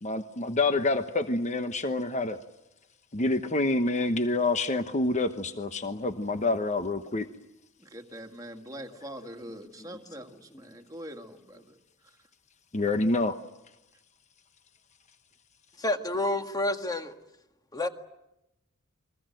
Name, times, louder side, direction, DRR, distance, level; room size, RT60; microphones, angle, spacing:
voice 1, 0.0-2.4 3.1-7.3 12.7-13.4, left 2 dB, 35° left, 9 dB, 1.1 m, -27 dB
voice 2, 7.8-11.8, equal, 15° right, 4 dB, 2.0 m, -43 dB
voice 3, 15.8-17.1 17.7-17.9, left 2 dB, 20° left, 7 dB, 1.7 m, -29 dB
29.5 x 23.0 x 7.8 m, 0.90 s
head